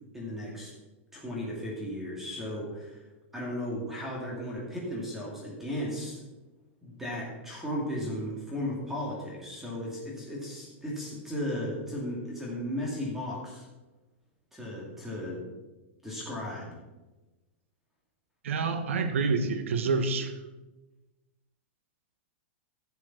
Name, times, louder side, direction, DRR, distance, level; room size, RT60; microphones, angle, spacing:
voice 1, 0.1-0.7 1.1-3.0 3.3-6.2 6.8-13.7 14.5-15.4 16.0-16.7, left 1 dB, 5° right, -4 dB, 2.5 m, -35 dB
voice 2, 18.4-20.3, right 4 dB, 85° right, 9 dB, 1.5 m, -27 dB
11.5 x 7.2 x 6.1 m, 1.1 s
supercardioid pair, 160°, 7 cm